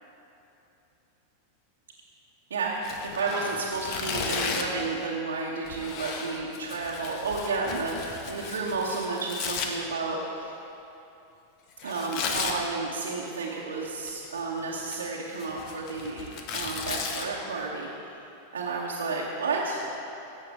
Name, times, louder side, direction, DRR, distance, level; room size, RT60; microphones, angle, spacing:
voice 1, 2.5-2.8 3.1-10.5 11.8-16.3 16.5-18.2 18.5-19.9, right 3 dB, 65° right, -4 dB, 1.2 m, -31 dB
Tearing, 2.8-4.8 5.6-9.7 11.8-12.6 13.9-14.4 14.8-17.2, left 5 dB, 40° left, 1.1 m, -35 dB
17.5 x 7.9 x 3.7 m, 2.9 s
figure-of-eight pair, 90°, 0 cm